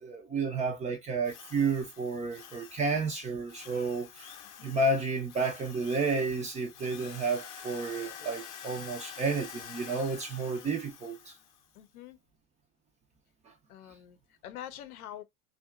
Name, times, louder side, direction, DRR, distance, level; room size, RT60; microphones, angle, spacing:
voice 1, 0.0-4.3 4.6-11.3, right 3 dB, 15° right, 0.4 m, -31 dB
Drill, 1.2-11.7, left 9 dB, 40° left, 0.7 m, -48 dB
voice 2, 11.7-12.2 13.7-14.2 14.4-15.2, left 11 dB, 80° left, 0.7 m, -45 dB
2.7 x 2.3 x 2.3 m
hypercardioid pair, 105°, 44 cm